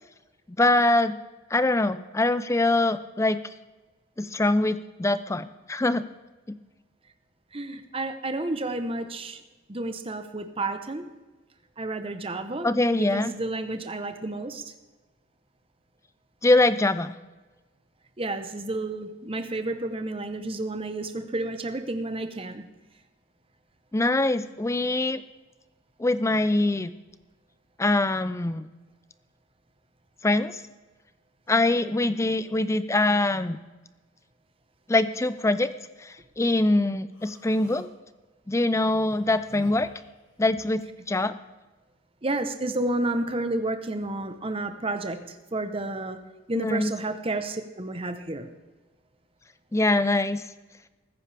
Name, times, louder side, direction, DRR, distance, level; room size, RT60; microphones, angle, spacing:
voice 1, 0.6-1.2 1.5-3.4 4.2-6.1 12.6-13.3 16.4-17.1 23.9-25.2 26.0-26.9 27.8-28.7 30.2-30.6 31.5-33.6 34.9-35.7 36.0-37.9 38.5-39.9 40.4-40.8 41.1-41.4 46.5-46.9 49.7-50.4, left 2 dB, 15° left, 13 dB, 0.4 m, -23 dB
voice 2, 7.5-9.4 9.7-11.1 11.8-14.7 18.2-22.6 42.2-46.2 46.5-48.5, right 2 dB, 25° right, 8 dB, 0.9 m, -31 dB
Human voice, 37.1-37.9 38.8-40.8, left 1 dB, 60° left, 2.7 m, -50 dB
20.0 x 9.9 x 3.4 m, 1.2 s
head